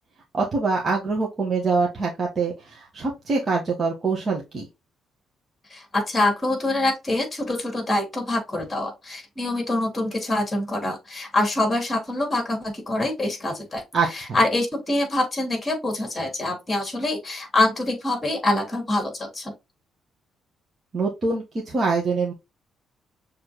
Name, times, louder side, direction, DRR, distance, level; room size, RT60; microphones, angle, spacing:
voice 1, 0.3-4.7 13.9-14.4 20.9-22.3, right 4 dB, 40° right, 1.6 m, -24 dB
voice 2, 5.7-13.8 14.1-19.5, left 2 dB, 20° left, 2.9 m, -25 dB
6.6 x 3.6 x 2.2 m
cardioid pair, 90°, 0 cm